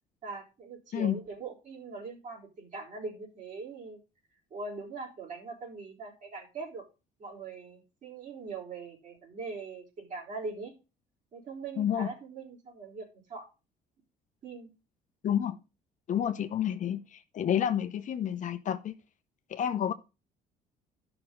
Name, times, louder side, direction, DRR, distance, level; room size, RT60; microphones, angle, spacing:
voice 1, 0.2-4.0 4.5-6.9 7.2-10.7 11.3-13.5 14.4-14.7, right 4 dB, 50° right, 3.9 m, -41 dB
voice 2, 11.8-12.1 15.2-15.6 16.1-18.9 19.5-19.9, left 9 dB, 50° left, 0.8 m, -29 dB
12.5 x 5.9 x 3.9 m
cardioid pair, 110°, 17 cm